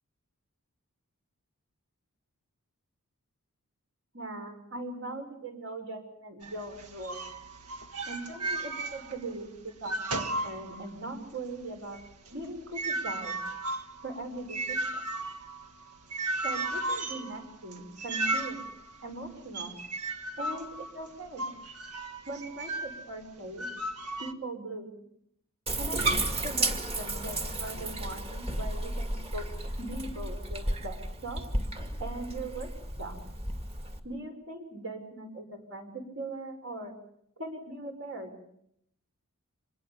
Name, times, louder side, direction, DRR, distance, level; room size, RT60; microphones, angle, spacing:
voice 1, 4.1-7.2 8.0-12.0 12.3-13.4 14.0-15.0 16.4-18.6 19.0-19.7 20.4-21.5 22.2-23.7 24.2-24.9 25.8-26.0 26.4-29.4 29.8-31.0 31.2-31.4 32.0-32.7 33.0-33.2 34.0-36.9 37.4-38.3, right 2 dB, 60° right, 5 dB, 6.1 m, -40 dB
sound 1, 6.4-9.4 9.7-11.2 11.5-23.0 23.6-24.3, right 2 dB, 80° right, 1.7 m, -35 dB
Bathtub (filling or washing), 25.7-34.0, right 2 dB, 25° right, 2.4 m, -33 dB
26.0 x 21.5 x 7.2 m, 0.74 s
head